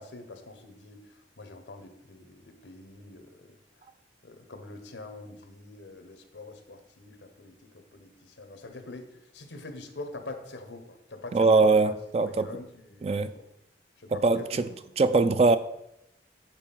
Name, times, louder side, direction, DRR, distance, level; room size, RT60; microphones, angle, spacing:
voice 1, 0.0-3.6 4.2-11.9 12.2-13.4 14.0-14.7, left 2 dB, 90° left, 1.1 m, -45 dB
voice 2, 11.3-12.5 13.0-13.3 14.1-14.7 15.0-15.6, right 3 dB, 35° right, 0.3 m, -22 dB
7.4 x 4.7 x 5.6 m
head